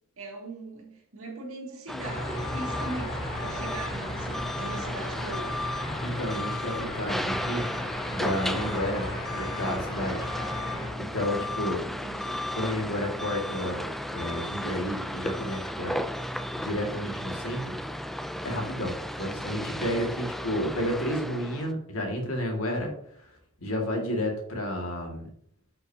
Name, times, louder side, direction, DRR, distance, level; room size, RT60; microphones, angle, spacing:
voice 1, 0.2-5.7 10.3-12.5, right 2 dB, 70° right, 0 dB, 2.2 m, -41 dB
sound 1, 1.9-21.7, left 1 dB, ahead, 0.4 m, -34 dB
sound 2, 2.0-10.9, left 1 dB, 45° left, 2.6 m, -36 dB
voice 2, 6.0-7.7 8.1-10.3 11.0-11.9 12.5-15.9 16.6-17.8 18.4-22.9 23.6-25.3, equal, 75° left, 1 dB, 2.0 m, -31 dB
9.2 x 6.6 x 2.8 m, 0.67 s
head